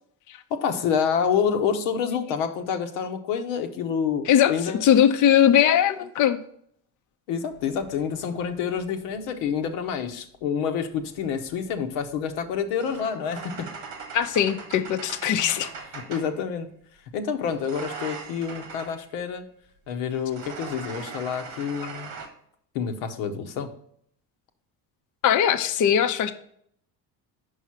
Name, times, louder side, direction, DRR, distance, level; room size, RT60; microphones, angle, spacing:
voice 1, 0.5-4.8 7.3-13.7 15.9-16.7 17.1-19.4 19.9-22.1 22.7-23.7, left 7 dB, 80° left, 6 dB, 0.9 m, -28 dB
voice 2, 4.8-6.4 14.1-15.7 25.2-26.3, left 9 dB, 40° left, 8 dB, 0.6 m, -20 dB
sound 1, 7.5-9.6 10.8-16.4 17.5-19.0 20.1-22.3, right 4 dB, 90° right, 1.4 m, -41 dB
5.5 x 4.8 x 5.7 m, 0.66 s
supercardioid pair, 70°, 46 cm